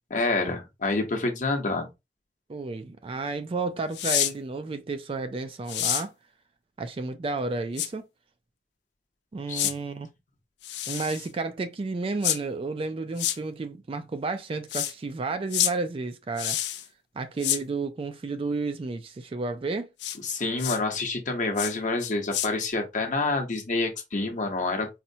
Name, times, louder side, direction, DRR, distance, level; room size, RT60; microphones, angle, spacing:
voice 1, 0.1-1.9 9.5-9.6 20.2-24.9, left 3 dB, 45° left, 0.9 m, -27 dB
voice 2, 2.5-6.1 6.8-8.0 9.3-10.1 10.9-16.6 17.2-19.9, right 3 dB, 30° right, 0.3 m, -32 dB
sound 1, 3.9-4.3 5.7-6.0 7.8-7.9 9.5-9.7 10.6-11.3 12.2-12.4 13.2-13.4 14.7-14.9 15.5-15.7 16.4-16.9 17.4-17.6 20.0-20.2 20.6-20.8 21.6-21.7 22.0-22.5, left 12 dB, 75° left, 0.4 m, -27 dB
4.2 x 2.0 x 2.7 m
head